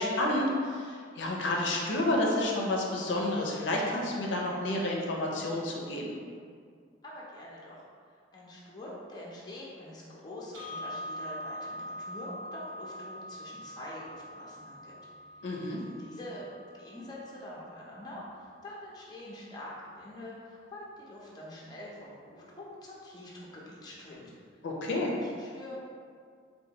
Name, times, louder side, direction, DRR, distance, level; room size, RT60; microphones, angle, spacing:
voice 1, 0.0-6.2 15.4-15.8 24.6-25.1, left 1 dB, 70° left, -2 dB, 0.5 m, -30 dB
voice 2, 7.0-7.8 8.1-14.9 15.6-16.5 16.7-24.3 25.0-25.8, left 1 dB, 20° left, -5 dB, 0.5 m, -45 dB
sound 1, 10.5-18.6, equal, 80° right, 0.6 m, -44 dB
4.3 x 2.2 x 2.8 m, 2.1 s
head